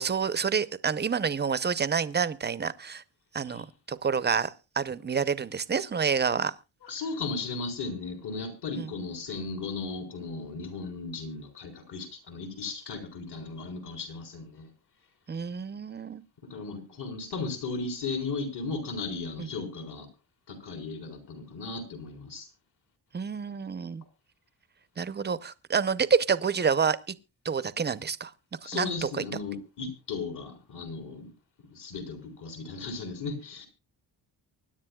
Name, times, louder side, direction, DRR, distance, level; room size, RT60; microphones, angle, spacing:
voice 1, 0.0-3.0 3.3-6.5 8.7-8.9 15.3-16.2 19.4-19.5 23.1-24.0 25.0-27.1 27.4-28.3 28.7-29.2, right 6 dB, 25° right, 0.6 m, -28 dB
voice 2, 6.8-14.7 16.5-20.1 20.5-22.5 28.6-31.3 31.7-33.7, left 4 dB, 65° left, 4.4 m, -36 dB
24.5 x 10.5 x 2.3 m
wide cardioid pair, 155°, 43 cm